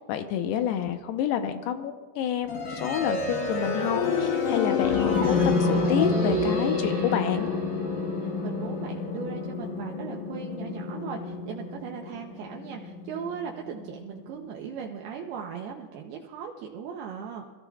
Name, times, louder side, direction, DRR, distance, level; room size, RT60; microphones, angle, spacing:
voice 1, 0.1-7.5, left 9 dB, 80° left, 7 dB, 2.7 m, -29 dB
sound 1, 2.5-14.4, left 4 dB, 60° left, 2.2 m, -28 dB
sound 2, 4.8-8.8, right 2 dB, 55° right, 0.6 m, -35 dB
voice 2, 7.9-17.5, right 7 dB, 75° right, 1 dB, 2.6 m, -38 dB
25.5 x 14.0 x 2.3 m, 1.4 s
omnidirectional pair, 4.9 m